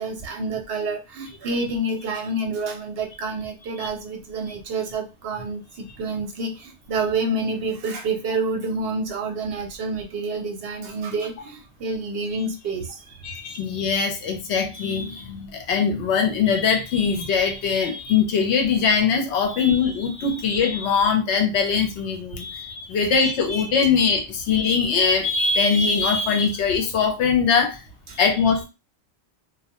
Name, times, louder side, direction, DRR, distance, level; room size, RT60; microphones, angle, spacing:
voice 1, 0.0-13.2 28.1-28.2, right 3 dB, 65° right, 3 dB, 0.7 m, -28 dB
voice 2, 13.2-27.8 28.1-28.6, left 5 dB, 75° left, 4 dB, 0.9 m, -21 dB
2.2 x 2.1 x 2.8 m, 0.27 s
omnidirectional pair, 1.2 m